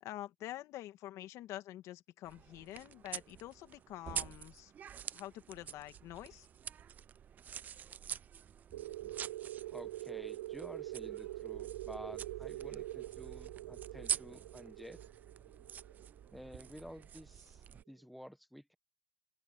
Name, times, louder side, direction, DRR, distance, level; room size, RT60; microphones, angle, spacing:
voice 1, 0.0-4.7 5.1-6.5, left 14 dB, 40° left, 2.0 m, -47 dB
sound 1, 2.2-17.8, right 8 dB, 20° right, 0.4 m, -46 dB
sound 2, 8.7-17.0, right 15 dB, 85° right, 0.5 m, -45 dB
voice 2, 9.7-15.0 16.3-18.7, equal, ahead, 1.3 m, -51 dB
open air
supercardioid pair, 145°, 8 cm